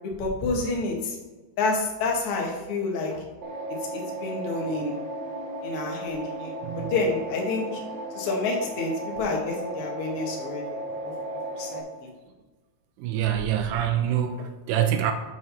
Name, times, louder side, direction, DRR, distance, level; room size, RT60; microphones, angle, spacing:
voice 1, 0.2-0.9 1.6-3.2 4.2-4.9 5.6-6.5 6.7-7.6 8.2-8.9 9.2-11.1 11.6-11.8, left 3 dB, 75° left, -1 dB, 1.2 m, -28 dB
sound 1, 3.4-11.8, right 1 dB, 70° right, 1.8 m, -35 dB
voice 2, 6.6-7.0 13.0-15.1, right 10 dB, 85° right, 7 dB, 2.7 m, -25 dB
7.5 x 4.7 x 5.5 m, 1.3 s
omnidirectional pair, 4.7 m